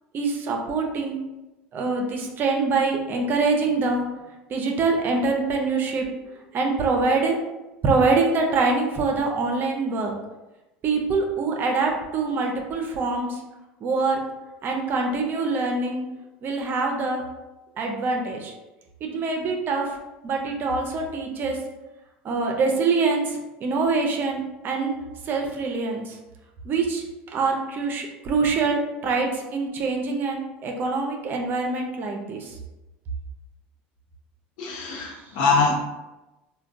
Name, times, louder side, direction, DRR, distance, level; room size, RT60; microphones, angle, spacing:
voice 1, 0.1-1.2 1.7-4.1 4.5-6.1 6.5-7.4 7.8-10.1 10.8-13.4 13.8-14.2 14.6-16.0 16.4-17.2 17.8-18.5 19.0-19.9 20.2-21.6 22.2-25.0 25.2-26.2 26.6-32.5 34.9-35.1, right 3 dB, 45° right, 2 dB, 0.6 m, -24 dB
voice 2, 34.6-35.8, left 4 dB, 70° left, 0 dB, 0.7 m, -23 dB
3.3 x 2.2 x 2.5 m, 1.0 s
supercardioid pair, 100°, 5 cm